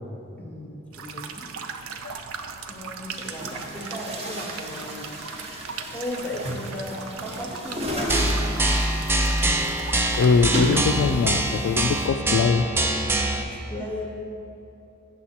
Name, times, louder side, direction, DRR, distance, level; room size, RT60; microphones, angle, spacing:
voice 1, 0.4-1.5 2.6-5.1 5.6-8.6 13.4-14.1, left 1 dB, 5° left, -1 dB, 0.9 m, -36 dB
sound 1, 0.9-10.9, right 6 dB, 80° right, 0.5 m, -39 dB
Chatter / Gurgling / Tap, 2.1-2.2 3.0-12.1, equal, 30° right, 0.9 m, -34 dB
sound 2, 8.1-13.4, right 1 dB, 10° right, 0.4 m, -24 dB
voice 2, 10.2-12.7 13.7-13.8, left 5 dB, 85° left, 9 dB, 0.3 m, -22 dB
7.2 x 6.6 x 4.2 m, 2.9 s
head